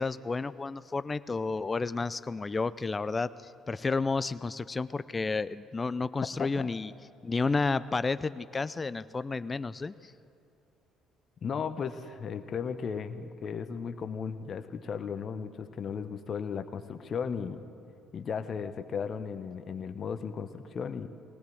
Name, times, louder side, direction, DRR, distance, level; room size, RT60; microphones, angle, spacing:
voice 1, 0.0-6.9 7.2-10.1, left 4 dB, 25° left, 16 dB, 0.5 m, -31 dB
voice 2, 11.4-17.7 18.1-21.1, left 6 dB, 45° left, 10 dB, 1.0 m, -35 dB
21.0 x 19.0 x 7.8 m, 2.6 s
hypercardioid pair, 50°, 0 cm